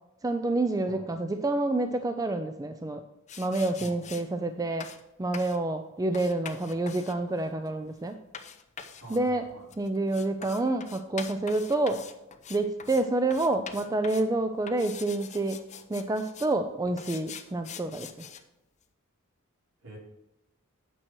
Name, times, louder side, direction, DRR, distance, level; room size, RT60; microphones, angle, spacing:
voice 1, 0.2-3.0 3.4-4.9 5.2-8.2 9.1-9.4 9.8-12.0 12.5-15.6 15.9-18.1, right 2 dB, 15° right, 8 dB, 0.4 m, -28 dB
sound 1, 3.3-4.2 4.8-5.0 5.3-5.6 6.1-13.0 13.3-14.3 14.7-16.5 17.0-18.4, left 7 dB, 35° left, 0.6 m, -44 dB
voice 2, 9.0-9.7 19.8-20.0, right 2 dB, 65° right, -3 dB, 3.6 m, -46 dB
9.0 x 6.0 x 4.5 m, 0.97 s
head